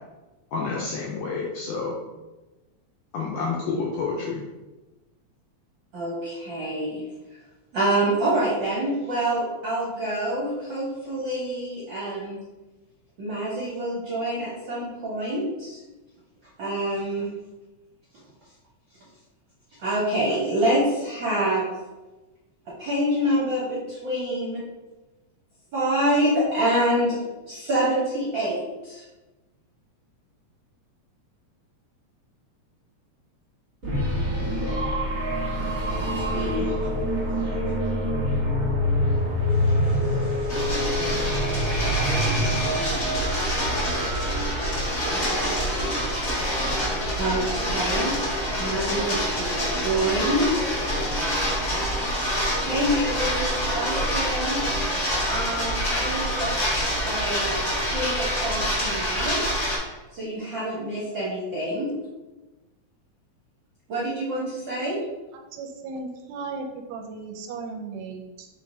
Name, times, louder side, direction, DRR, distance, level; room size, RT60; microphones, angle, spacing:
voice 1, 0.5-2.0 3.1-4.4, left 4 dB, 80° left, -2 dB, 1.5 m, -29 dB
voice 2, 5.9-7.0 7.7-12.4 13.2-15.8 16.6-17.3 19.8-21.7 22.7-24.6 25.7-27.2 27.4-29.0 35.9-36.8 39.7-40.6 47.2-48.1 48.6-50.7 52.6-54.6 55.3-56.6 56.9-57.6 57.9-59.4 60.1-61.9 63.9-65.0, right 1 dB, 60° right, -7 dB, 1.2 m, -26 dB
sound 1, 33.8-46.5, equal, 40° right, 1.0 m, -26 dB
sound 2, 40.5-59.8, equal, 35° left, 1.3 m, -26 dB
voice 3, 65.5-68.5, right 4 dB, 80° right, 3 dB, 1.7 m, -36 dB
4.7 x 4.1 x 2.6 m, 1.1 s
omnidirectional pair, 3.5 m